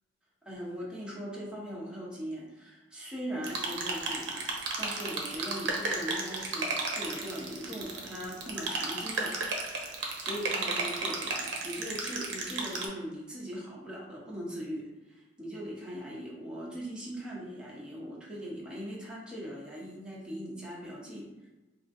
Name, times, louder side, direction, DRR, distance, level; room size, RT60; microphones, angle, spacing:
voice 1, 0.4-9.9 10.2-21.5, equal, 5° right, -6 dB, 0.8 m, -40 dB
sound 1, 3.4-12.8, right 3 dB, 65° right, 0.7 m, -34 dB
4.3 x 2.5 x 2.6 m, 1.1 s
head